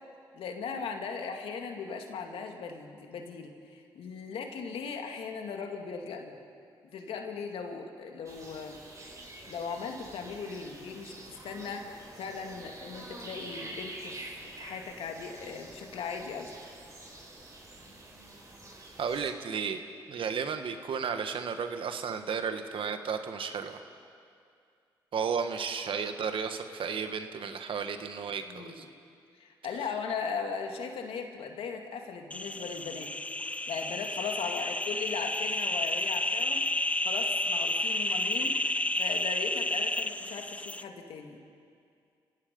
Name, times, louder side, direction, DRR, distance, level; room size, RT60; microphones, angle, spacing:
voice 1, 0.3-6.4 6.9-8.8 9.5-16.5 28.5-28.8 29.3-33.1 33.5-36.7 37.0-38.5 39.0-41.4, left 5 dB, 80° left, 4 dB, 2.2 m, -38 dB
sound 1, 8.2-19.3, right 1 dB, 35° right, 5.9 m, -47 dB
voice 2, 19.0-23.8 25.1-28.8, right 6 dB, 65° right, 8 dB, 1.5 m, -33 dB
sound 2, 32.3-40.8, left 1 dB, 15° left, 0.8 m, -31 dB
29.5 x 16.5 x 5.4 m, 2.3 s
supercardioid pair, 55°, 9 cm